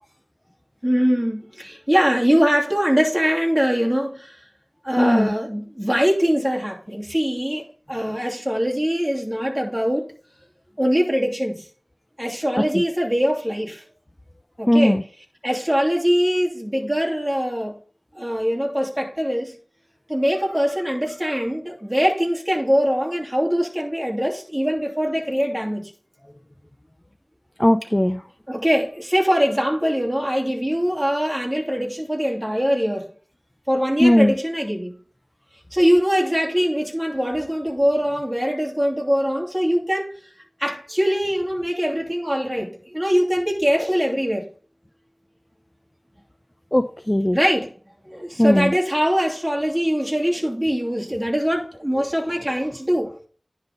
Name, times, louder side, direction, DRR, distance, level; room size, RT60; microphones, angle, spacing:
voice 1, 0.8-4.4 4.8-10.1 10.8-11.7 12.2-13.8 14.6-15.0 15.4-17.8 18.1-19.5 20.1-25.9 28.5-33.1 33.7-34.9 35.7-40.1 40.6-44.5 47.3-47.7 48.0-53.1, equal, 10° right, 2.8 m, -22 dB
voice 2, 5.0-5.3 12.7-12.8 14.7-15.0 27.6-28.2 34.0-34.4 46.7-47.4 48.4-48.7, left 1 dB, 20° left, 0.6 m, -17 dB
10.0 x 4.1 x 5.2 m
wide cardioid pair, 45°, 0 cm